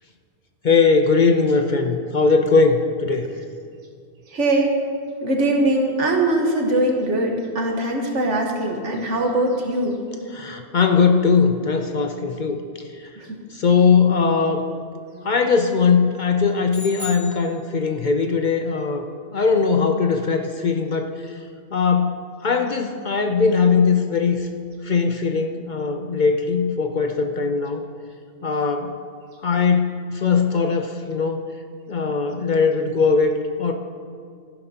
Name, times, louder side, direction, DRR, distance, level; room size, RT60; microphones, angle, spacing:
voice 1, 0.6-3.3 10.3-12.6 13.0-13.1 13.5-14.6 15.2-19.1 19.3-21.3 21.7-24.5 24.8-27.8 28.4-28.9 29.4-31.4 31.9-33.7, left 5 dB, 50° left, 5 dB, 0.6 m, -20 dB
voice 2, 4.3-4.8 5.2-10.0, right 1 dB, 80° right, 1 dB, 1.6 m, -21 dB
sound 1, 16.7-18.2, left 1 dB, 50° right, 2.2 m, -37 dB
14.5 x 11.0 x 2.8 m, 2.2 s
omnidirectional pair, 1.2 m